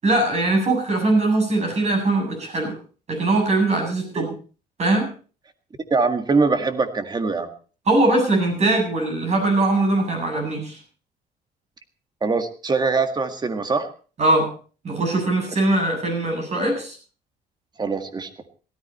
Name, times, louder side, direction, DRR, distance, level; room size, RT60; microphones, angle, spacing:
voice 1, 0.0-2.7 3.1-4.3 4.8-5.1 7.9-10.8 14.2-14.5 14.8-17.0, right 2 dB, 40° right, 3 dB, 7.9 m, -21 dB
voice 2, 5.9-7.5 12.2-13.9 17.8-18.3, right 4 dB, 25° right, 8 dB, 1.9 m, -22 dB
17.5 x 13.5 x 4.3 m, 0.38 s
cardioid pair, 110°, 17 cm